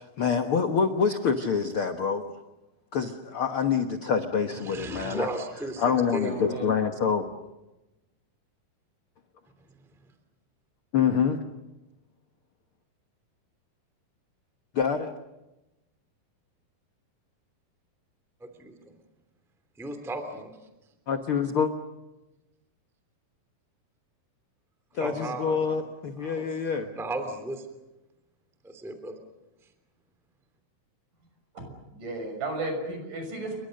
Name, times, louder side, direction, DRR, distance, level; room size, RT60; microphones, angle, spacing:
voice 1, 0.0-2.2 2.9-5.3 5.8-7.3 10.9-11.4 14.7-15.1 21.1-21.7 24.9-26.9, left 6 dB, 65° left, 7 dB, 1.4 m, -26 dB
voice 2, 4.6-5.8 6.1-6.3 18.6-18.9 19.8-20.6 25.0-25.8 26.2-26.6 26.9-27.7 28.6-29.1, right 2 dB, ahead, 7 dB, 2.1 m, -35 dB
voice 3, 6.2-6.7 31.5-33.6, right 2 dB, 55° right, 5 dB, 7.7 m, -34 dB
29.5 x 23.5 x 6.5 m, 1.0 s
omnidirectional pair, 4.3 m